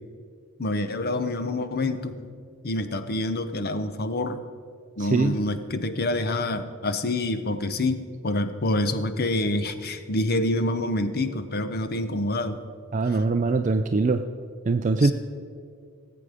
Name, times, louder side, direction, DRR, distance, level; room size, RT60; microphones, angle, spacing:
voice 1, 0.6-2.3 2.6-4.4 5.0-12.6 15.0-15.1, left 1 dB, 45° left, 10 dB, 0.7 m, -27 dB
voice 2, 5.0-5.4 12.9-14.2 14.7-15.1, right 3 dB, 35° right, 7 dB, 0.4 m, -22 dB
19.0 x 7.9 x 5.0 m, 2.3 s
head